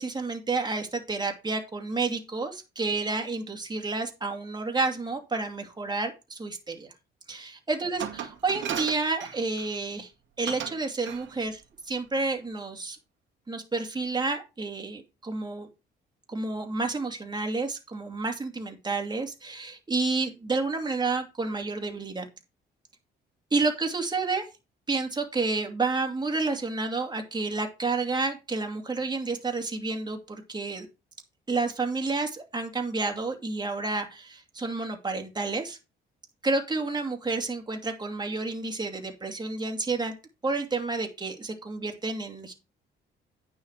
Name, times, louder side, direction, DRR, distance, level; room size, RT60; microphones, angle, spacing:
voice 1, 0.0-6.9 7.3-10.1 10.4-11.6 11.9-13.0 13.5-15.7 16.3-22.2 23.5-24.5 24.9-30.9 31.5-35.8 36.4-40.1 40.4-42.5, right 3 dB, 20° right, 4 dB, 2.6 m, -30 dB
Glass, 8.0-9.8 10.5-10.8 11.1-11.3, right 9 dB, 70° right, 2.0 m, -35 dB
9.6 x 6.0 x 4.8 m, 0.27 s
cardioid pair, 90°, 20 cm